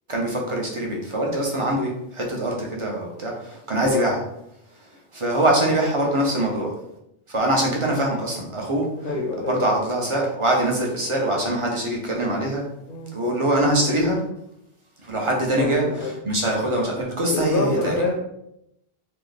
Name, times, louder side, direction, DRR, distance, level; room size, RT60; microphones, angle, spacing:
voice 1, 0.1-4.2 5.1-6.7 7.3-9.1 9.5-12.6 13.1-14.2 15.0-17.9, right 1 dB, 30° right, -1 dB, 0.9 m, -23 dB
voice 2, 9.0-9.7 12.9-13.1 15.5-16.2 17.3-18.1, left 3 dB, 60° left, 1 dB, 0.7 m, -26 dB
3.2 x 2.9 x 4.0 m, 0.79 s
omnidirectional pair, 1.1 m